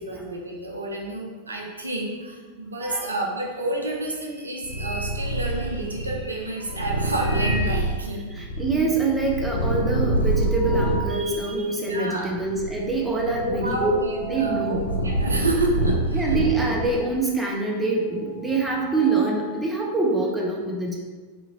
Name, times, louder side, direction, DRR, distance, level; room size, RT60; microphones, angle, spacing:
voice 1, 0.0-8.4 11.9-12.3 13.4-16.4, right 2 dB, 75° right, 0 dB, 0.4 m, -29 dB
voice 2, 2.8-3.1 8.3-14.9 16.1-21.0, right 3 dB, 10° right, -2 dB, 0.5 m, -25 dB
sound 1, 3.5-3.6 3.9-6.0 6.9-7.9 8.3-8.4 8.6-8.7 9.1-11.2 11.7-11.8 12.6-12.9 13.2-16.5 16.8-19.7, right 2 dB, 15° left, 1.1 m, -38 dB
Purr, 4.6-11.2 11.8-17.1, right 2 dB, 80° left, 0.5 m, -26 dB
2.8 x 2.5 x 2.7 m, 1.4 s
figure-of-eight pair, 90°, 0 cm